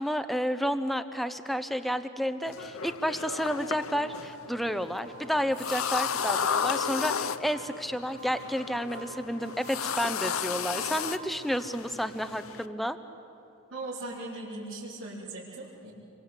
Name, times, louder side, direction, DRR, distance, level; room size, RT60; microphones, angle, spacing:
voice 1, 0.0-13.0, equal, ahead, 10 dB, 0.8 m, -31 dB
sound 1, 2.5-12.7, left 7 dB, 85° left, 0.8 m, -34 dB
Glass, 5.0-11.7, right 9 dB, 50° right, 4.2 m, -50 dB
voice 2, 13.7-15.9, right 2 dB, 75° right, -9 dB, 4.3 m, -39 dB
27.5 x 23.5 x 8.2 m, 3.0 s
head